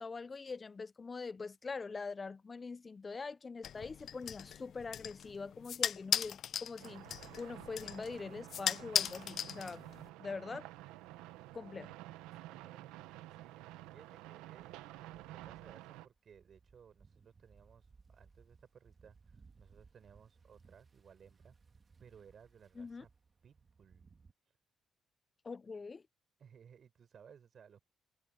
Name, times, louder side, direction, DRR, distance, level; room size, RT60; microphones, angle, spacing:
voice 1, 0.0-7.1 7.4-9.8 10.2-10.7 11.5-11.9 22.8-23.0 25.4-26.0, left 4 dB, 35° left, 1.0 m, -43 dB
sound 1, 3.6-10.1, left 9 dB, 65° left, 0.5 m, -38 dB
sound 2, 6.8-16.1, right 16 dB, 90° right, 1.2 m, -51 dB
voice 2, 12.3-21.5 22.0-23.1 23.4-24.1 24.4-24.6 26.4-27.9, right 7 dB, 55° right, 5.1 m, -61 dB
sound 3, 14.6-24.3, right 4 dB, 40° right, 2.2 m, -64 dB
supercardioid pair, 60°, 0 cm